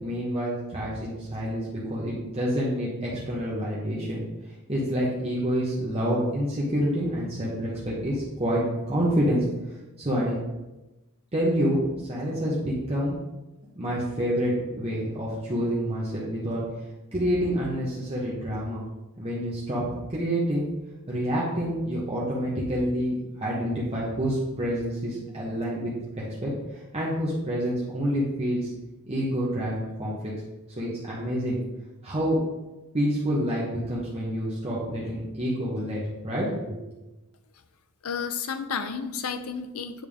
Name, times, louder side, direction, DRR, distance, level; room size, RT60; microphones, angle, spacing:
voice 1, 0.0-4.2 4.7-8.6 8.9-9.5 10.0-10.4 11.3-13.2 13.8-16.6 17.1-18.8 19.2-19.8 20.1-20.7 21.1-26.5 26.9-28.7 29.1-30.3 30.8-31.6 32.0-32.4 32.9-36.8, equal, 30° right, -6 dB, 1.0 m, -27 dB
voice 2, 38.0-40.1, left 6 dB, 70° left, 9 dB, 0.5 m, -32 dB
8.9 x 3.5 x 3.5 m, 1.0 s
head